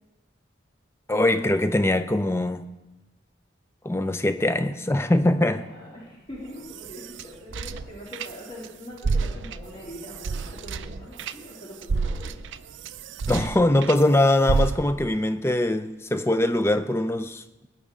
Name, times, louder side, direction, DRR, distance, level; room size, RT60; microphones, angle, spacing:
voice 1, 1.1-2.7 3.8-5.7 13.3-17.4, left 1 dB, 15° left, 0.5 m, -22 dB
voice 2, 5.5-12.3, left 1 dB, 35° left, 2.7 m, -42 dB
sound 1, 6.3-8.7 9.0-14.0 14.5-15.2, right 4 dB, 75° right, 0.4 m, -30 dB
19.5 x 8.9 x 3.7 m
head